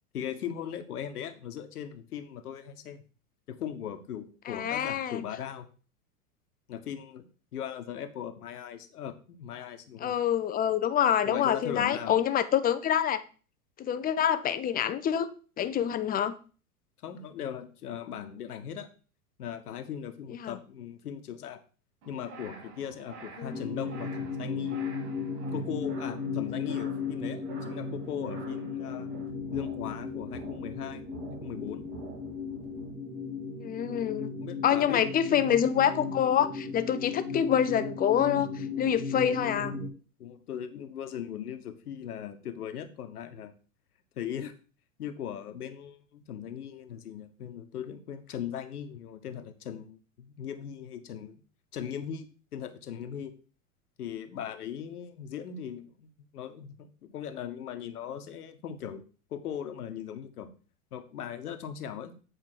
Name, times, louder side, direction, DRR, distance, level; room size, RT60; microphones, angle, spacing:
voice 1, 0.1-3.0 3.5-5.7 6.7-10.2 11.2-12.2 17.0-18.9 19.4-21.6 22.1-24.8 25.5-29.1 29.5-31.0 31.3-31.9 34.4-35.7 40.2-43.5 44.2-44.5 45.0-51.4 51.7-53.4 54.0-59.0 59.3-60.5 60.9-62.1, left 9 dB, 75° left, 9 dB, 1.2 m, -39 dB
voice 2, 4.5-5.2 10.0-13.2 13.8-15.3 15.6-16.4 20.4-20.6 23.4-23.6 33.6-34.3 34.6-39.8, left 9 dB, 20° left, 12 dB, 0.6 m, -26 dB
sound 1, 22.0-32.9, right 4 dB, 50° right, 2.9 m, -49 dB
sound 2, 23.5-39.9, left 5 dB, 75° right, 3.0 m, -36 dB
8.2 x 5.0 x 4.5 m, 0.38 s
hypercardioid pair, 100°, 46 cm